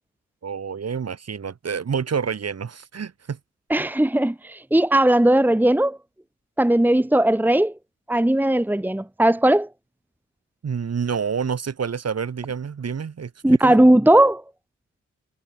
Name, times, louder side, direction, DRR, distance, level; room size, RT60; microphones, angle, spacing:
voice 1, 0.4-3.4 10.6-13.8, right 6 dB, 55° right, 7.7 m, -28 dB
voice 2, 3.7-6.0 6.6-7.7 8.1-9.7 13.4-14.4, right 1 dB, 5° right, 1.4 m, -18 dB
cardioid pair, 85°, 29 cm